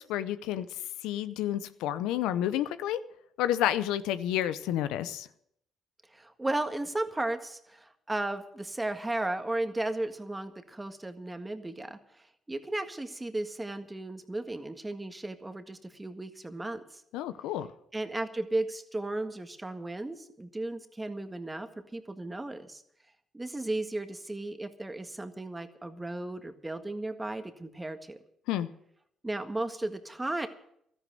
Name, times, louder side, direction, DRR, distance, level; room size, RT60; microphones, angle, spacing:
voice 1, 0.0-3.0 3.4-5.3 17.1-17.7 28.5-28.7, left 12 dB, 85° left, 13 dB, 0.7 m, -30 dB
voice 2, 6.1-17.0 17.9-22.8 23.3-28.2 29.2-30.5, right 2 dB, 15° right, 8 dB, 1.7 m, -35 dB
13.0 x 10.5 x 7.7 m, 0.72 s
supercardioid pair, 65°, 0 cm